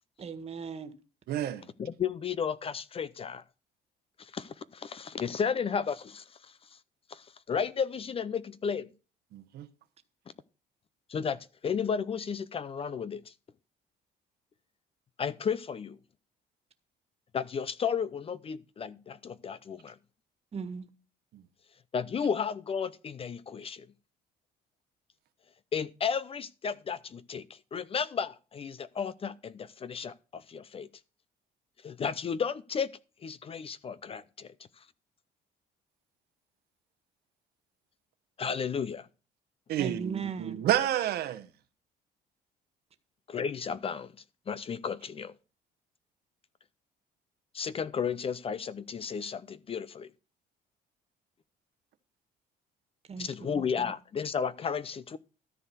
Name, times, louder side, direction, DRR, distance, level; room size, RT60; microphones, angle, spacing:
voice 1, 0.2-0.9 20.5-20.9 39.8-40.6 53.1-53.9, right 5 dB, 35° right, 1.7 m, -38 dB
voice 2, 1.3-1.6 9.3-9.7 39.7-41.5, right 12 dB, 70° right, 1.0 m, -30 dB
voice 3, 1.8-3.4 4.2-6.2 7.1-8.9 11.1-13.3 15.2-16.0 17.3-20.0 21.9-23.9 25.7-30.9 31.8-32.9 33.2-34.5 38.4-39.1 43.3-44.1 44.5-45.3 47.5-50.1 53.2-55.2, left 6 dB, 35° left, 0.6 m, -33 dB
13.5 x 4.7 x 6.8 m
cardioid pair, 110°, 17 cm